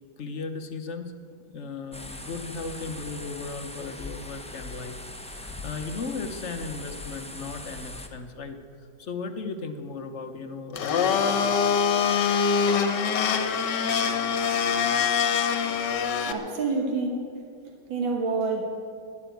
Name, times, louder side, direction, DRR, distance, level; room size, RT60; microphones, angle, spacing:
voice 1, 0.2-1.2 1.5-8.6 9.0-11.6, left 4 dB, 50° left, 7 dB, 0.9 m, -36 dB
sound 1, 1.9-8.1, left 2 dB, 10° left, 0.3 m, -40 dB
Domestic sounds home sounds, 10.7-16.3, left 6 dB, 65° left, 1.5 m, -24 dB
voice 2, 16.3-17.3 17.9-18.6, right 4 dB, 90° right, 2 dB, 2.1 m, -27 dB
12.0 x 11.0 x 9.1 m, 2.5 s
omnidirectional pair, 2.0 m